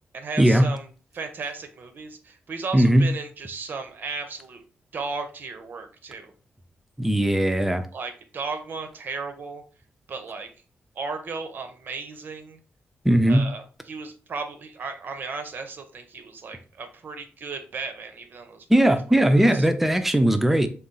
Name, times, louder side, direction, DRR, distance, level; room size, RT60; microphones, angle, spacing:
voice 1, 0.1-0.9 1.1-4.6 4.9-6.3 7.9-9.6 10.1-10.5 11.0-12.6 13.3-18.8 19.4-19.7, right 4 dB, 50° right, 7 dB, 0.6 m, -35 dB
voice 2, 2.7-3.1 7.0-7.9 13.0-13.4 18.7-20.7, right 1 dB, 5° right, 8 dB, 0.4 m, -19 dB
3.9 x 2.3 x 3.7 m, 0.37 s
wide cardioid pair, 165°, 4 cm